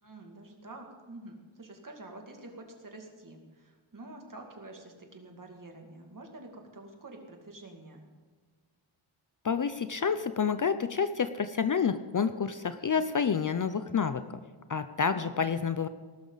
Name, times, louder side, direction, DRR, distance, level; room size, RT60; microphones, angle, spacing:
voice 1, 0.0-8.0 15.1-15.3, right 2 dB, 40° right, 3 dB, 2.3 m, -48 dB
voice 2, 9.4-14.2 14.7-15.9, left 6 dB, 40° left, 11 dB, 0.5 m, -29 dB
19.5 x 12.0 x 4.0 m, 1.5 s
wide cardioid pair, 125°, 50 cm